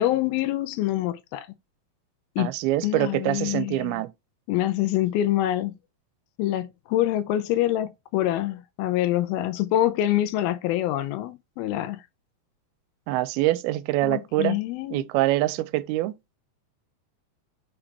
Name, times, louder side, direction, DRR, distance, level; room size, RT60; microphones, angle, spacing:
voice 1, 0.0-1.5 2.4-2.5 2.8-4.0 4.5-5.8 6.4-12.0 14.0-15.1, left 13 dB, 85° left, 2.5 m, -25 dB
voice 2, 2.4-4.1 13.1-14.6 14.9-16.1, right 16 dB, 85° right, 2.5 m, -25 dB
6.1 x 5.0 x 3.3 m
omnidirectional pair, 4.4 m